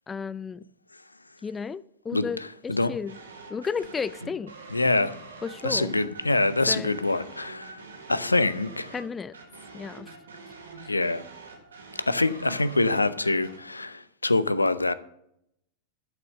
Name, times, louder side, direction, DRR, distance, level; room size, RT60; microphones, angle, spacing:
voice 1, 0.1-0.6 1.4-3.2 3.5-4.5 5.4-5.9 6.7-7.0 8.9-9.4 9.7-10.1 10.8-10.9, left 5 dB, 15° left, 0.3 m, -33 dB
sound 1, 3.1-13.6, right 4 dB, 70° right, 2.2 m, -45 dB
voice 2, 4.7-5.2 5.6-7.8 8.1-8.9 10.9-11.2 12.1-14.9, left 2 dB, 80° left, 0.6 m, -25 dB
11.5 x 6.6 x 6.5 m
figure-of-eight pair, 90°, 0 cm